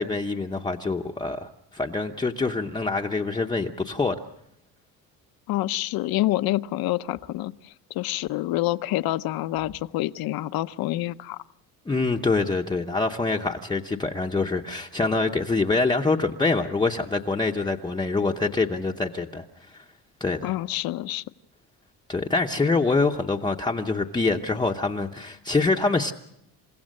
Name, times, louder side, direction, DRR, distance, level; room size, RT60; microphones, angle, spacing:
voice 1, 0.0-4.2 11.9-19.4 19.7-19.8 20.2-20.5 22.1-26.1, left 3 dB, 10° left, 0 dB, 0.8 m, -25 dB
voice 2, 5.5-11.4 20.4-21.2, left 16 dB, 75° left, 14 dB, 0.8 m, -27 dB
29.0 x 16.0 x 6.5 m, 0.81 s
cardioid pair, 150°, 36 cm